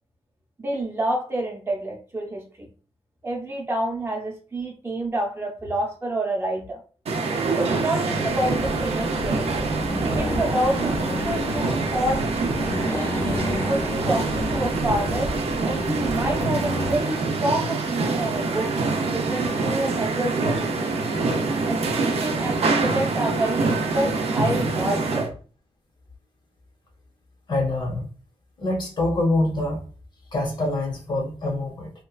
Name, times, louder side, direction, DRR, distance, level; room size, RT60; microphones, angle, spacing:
voice 1, 0.6-2.5 3.2-6.8 7.5-9.5 10.1-12.8 13.4-15.3 15.6-18.7 19.1-20.9 21.7-25.3, right 1 dB, 25° right, -1 dB, 0.6 m, -28 dB
sound 1, 7.1-25.3, right 3 dB, 70° right, 0.5 m, -25 dB
Accelerating revving vroom, 8.3-17.0, left 2 dB, 20° left, 0.4 m, -31 dB
voice 2, 27.5-28.1 28.6-29.8 30.3-31.9, left 2 dB, 45° left, 2 dB, 0.8 m, -25 dB
2.9 x 2.3 x 2.3 m, 0.40 s
wide cardioid pair, 160°, 11 cm